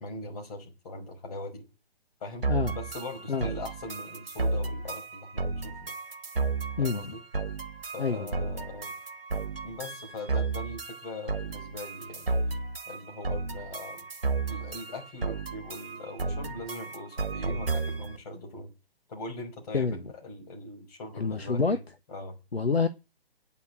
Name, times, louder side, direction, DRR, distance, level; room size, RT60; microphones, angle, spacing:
voice 1, 0.0-1.7 2.2-5.9 6.8-7.2 7.9-8.9 9.6-12.4 12.9-14.1 14.5-18.7 19.1-21.8 22.1-22.4, left 2 dB, 40° left, 5.8 m, -41 dB
sound 1, 2.4-18.2, right 4 dB, 65° right, 1.7 m, -33 dB
voice 2, 21.2-21.8 22.5-22.9, left 4 dB, 75° left, 1.3 m, -26 dB
10.0 x 8.4 x 8.2 m
figure-of-eight pair, 140°, 31 cm